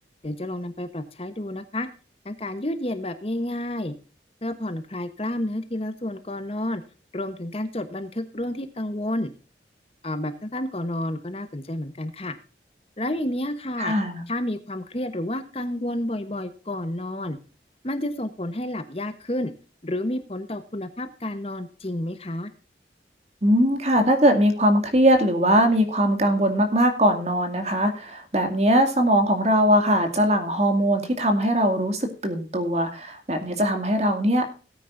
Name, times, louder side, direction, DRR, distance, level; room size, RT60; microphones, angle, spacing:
voice 1, 0.2-1.9 2.2-3.9 4.4-6.8 7.1-9.3 10.0-12.4 13.0-13.9 14.3-17.4 17.8-19.5 19.8-22.5, left 1 dB, 35° left, 10 dB, 1.0 m, -30 dB
voice 2, 13.8-14.2 23.4-34.5, equal, 35° right, 6 dB, 2.3 m, -21 dB
17.5 x 9.3 x 2.6 m, 0.36 s
head